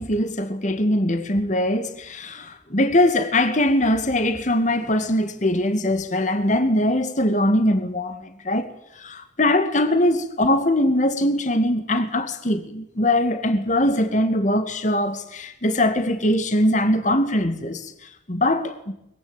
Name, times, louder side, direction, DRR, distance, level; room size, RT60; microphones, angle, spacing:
voice 1, 0.0-8.7 9.0-18.9, left 1 dB, 45° left, 2.2 m, -22 dB
23.0 x 22.0 x 9.0 m
head